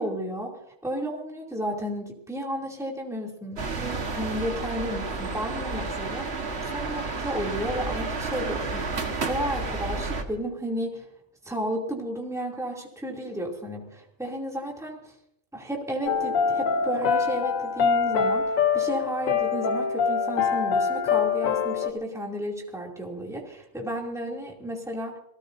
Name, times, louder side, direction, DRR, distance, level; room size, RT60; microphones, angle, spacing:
voice 1, 0.0-11.1 11.4-15.1 15.5-18.4 18.7-25.2, equal, ahead, -2 dB, 2.7 m, -33 dB
sound 1, 3.6-10.2, right 3 dB, 55° right, 1.7 m, -31 dB
sound 2, 16.1-21.9, left 6 dB, 85° left, 1.3 m, -24 dB
27.0 x 19.5 x 2.7 m, 0.72 s
omnidirectional pair, 1.4 m